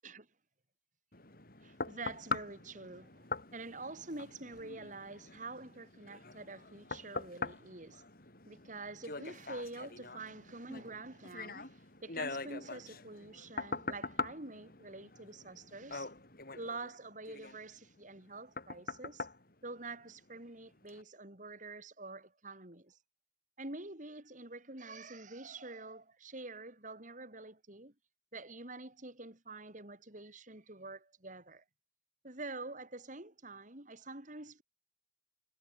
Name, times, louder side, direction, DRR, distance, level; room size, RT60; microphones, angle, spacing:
sound 1, 1.1-20.4 20.9-21.0, left 3 dB, 55° left, 6.0 m, -43 dB
voice 1, 1.6-8.0 8.5-16.1 16.6-19.3 19.6-23.0 23.6-27.9 28.3-31.6 32.2-34.6, right 3 dB, 45° right, 4.3 m, -47 dB
head